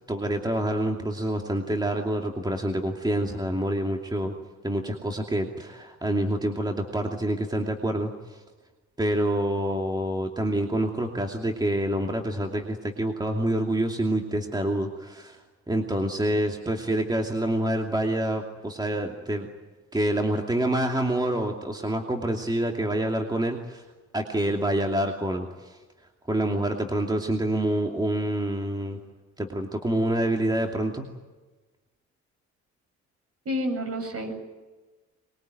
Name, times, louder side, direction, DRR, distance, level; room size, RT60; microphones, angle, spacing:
voice 1, 0.1-4.3 4.6-8.4 9.0-19.5 19.9-23.8 24.1-25.8 26.3-29.0 29.4-31.0, right 1 dB, 15° right, 2 dB, 2.7 m, -27 dB
voice 2, 33.4-34.4, equal, 50° right, 5 dB, 7.8 m, -29 dB
23.5 x 22.5 x 9.4 m, 1.2 s
cardioid pair, 90°, 30 cm